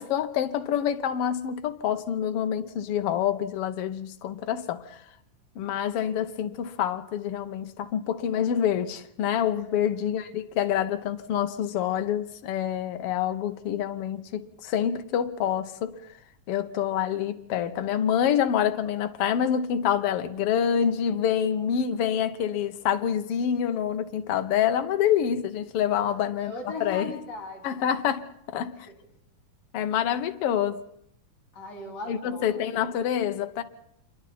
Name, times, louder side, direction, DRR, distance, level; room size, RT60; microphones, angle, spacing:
voice 1, 0.0-5.0 5.5-15.9 16.5-26.5 26.8-27.1 27.6-28.9 29.7-30.8 32.1-33.6, left 9 dB, 70° left, 1.4 m, -27 dB
voice 2, 9.5-9.9 26.0-27.9 28.9-29.0 31.5-32.8, left 3 dB, 50° left, 5.1 m, -39 dB
27.0 x 22.5 x 4.3 m
omnidirectional pair, 3.8 m